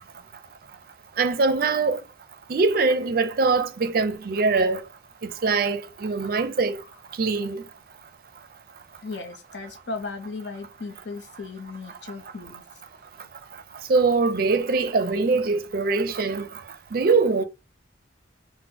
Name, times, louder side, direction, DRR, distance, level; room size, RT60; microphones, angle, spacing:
voice 1, 1.2-2.0 2.5-4.8 5.2-6.8 7.2-7.6 13.9-16.5 16.9-17.4, right 4 dB, 50° right, 0.4 m, -22 dB
voice 2, 9.0-12.6, left 3 dB, 75° left, 0.8 m, -36 dB
3.9 x 2.1 x 2.8 m
head